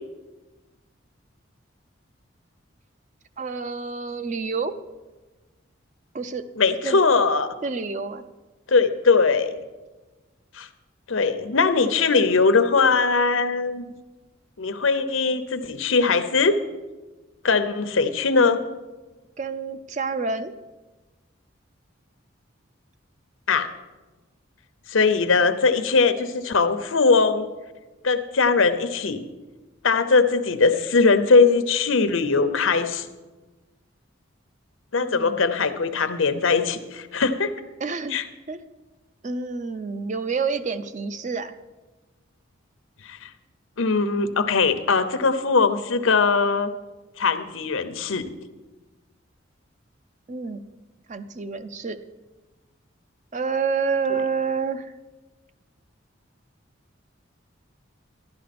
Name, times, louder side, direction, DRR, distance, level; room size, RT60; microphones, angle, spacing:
voice 1, 3.4-4.7 6.1-6.4 6.8-7.0 7.6-8.2 19.4-20.5 35.1-35.4 37.8-38.2 38.5-38.6 39.2-41.5 50.3-50.6 51.1-52.0 53.3-54.9, right 5 dB, 35° right, 11 dB, 0.5 m, -28 dB
voice 2, 6.6-7.5 8.7-9.5 10.5-10.7 11.1-13.8 14.6-16.6 17.4-18.6 23.5-23.7 24.9-27.5 28.0-29.2 29.8-33.1 34.9-37.5 38.1-38.2 43.0-43.3 43.8-46.7 47.2-48.2, left 4 dB, 85° left, 10 dB, 0.8 m, -20 dB
12.0 x 11.5 x 4.3 m, 1.2 s
head